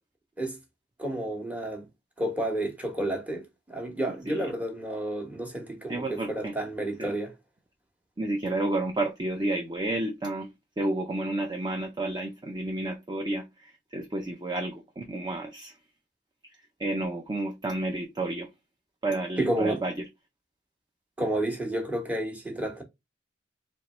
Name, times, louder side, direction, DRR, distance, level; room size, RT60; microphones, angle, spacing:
voice 1, 1.0-1.9 2.2-7.3 19.4-19.8 21.2-22.8, right 1 dB, 10° right, 1.2 m, -30 dB
voice 2, 5.9-6.5 7.0-7.1 8.2-10.5 10.8-15.7 16.8-18.5 19.0-19.9, right 2 dB, 25° right, 0.5 m, -31 dB
4.3 x 3.1 x 3.0 m
head